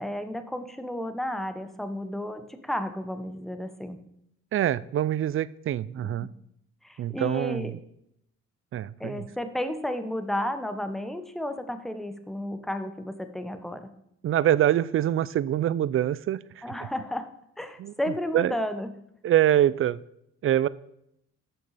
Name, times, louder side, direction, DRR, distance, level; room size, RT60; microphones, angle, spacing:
voice 1, 0.0-4.0 6.8-7.7 9.0-13.9 16.6-17.3 17.6-19.0, left 1 dB, ahead, 9 dB, 0.9 m, -32 dB
voice 2, 4.5-6.3 7.0-7.8 8.7-9.3 14.2-16.6 17.8-17.9 18.3-18.5 19.2-20.0 20.4-20.7, right 11 dB, 45° right, 19 dB, 0.4 m, -24 dB
10.0 x 6.6 x 4.1 m, 0.76 s
cardioid pair, 90°, 30 cm